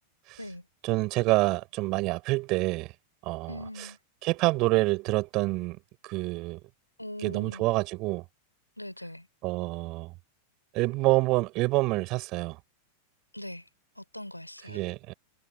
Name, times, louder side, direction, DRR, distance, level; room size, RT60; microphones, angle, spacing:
voice 1, 0.8-2.9 3.2-3.5 4.2-5.8 6.0-6.6 7.2-8.2 9.4-10.1 10.7-12.6 14.7-15.1, right 22 dB, 40° right, 4.3 m, -27 dB
voice 2, 3.5-4.0 7.0-7.7 8.8-9.3 13.3-13.7 14.0-14.8, left 1 dB, 90° left, 3.4 m, -41 dB
figure-of-eight pair, 90°, 0 cm